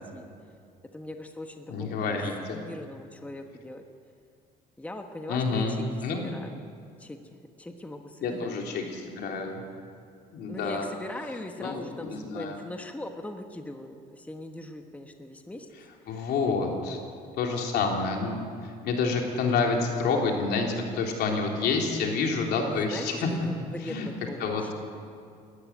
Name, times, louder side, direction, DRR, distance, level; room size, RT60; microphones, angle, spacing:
voice 1, 0.9-2.1 2.5-3.8 4.8-5.8 6.2-6.5 7.0-7.2 7.6-8.5 10.5-15.7 16.1-16.2 16.7-16.8 22.6-24.7, left 1 dB, 10° left, 5 dB, 1.3 m, -40 dB
voice 2, 1.7-2.6 5.3-6.2 8.2-9.6 10.3-10.9 11.6-12.6 16.1-17.0 17.4-23.3 23.8-24.1 24.4-24.6, left 4 dB, 75° left, 1 dB, 3.4 m, -28 dB
19.5 x 13.5 x 9.7 m, 2.3 s
cardioid pair, 110°, 17 cm